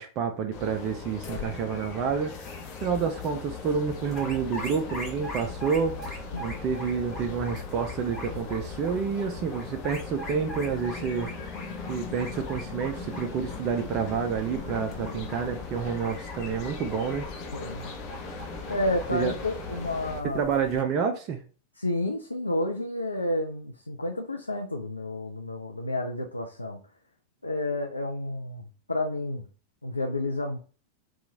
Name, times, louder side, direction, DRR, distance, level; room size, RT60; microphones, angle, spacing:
voice 1, 0.0-11.6 11.9-17.3 19.1-19.3 20.2-21.4, right 6 dB, 35° right, 4 dB, 0.4 m, -29 dB
sound 1, 0.5-20.2, left 5 dB, 40° left, 0.6 m, -39 dB
sound 2, 4.0-20.8, equal, 20° left, 1.2 m, -42 dB
voice 2, 17.5-17.9 18.7-20.4 21.8-26.8 27.4-29.5 29.8-30.6, left 1 dB, 80° left, 2 dB, 0.4 m, -30 dB
2.9 x 2.3 x 3.8 m, 0.38 s
figure-of-eight pair, 90°, 0 cm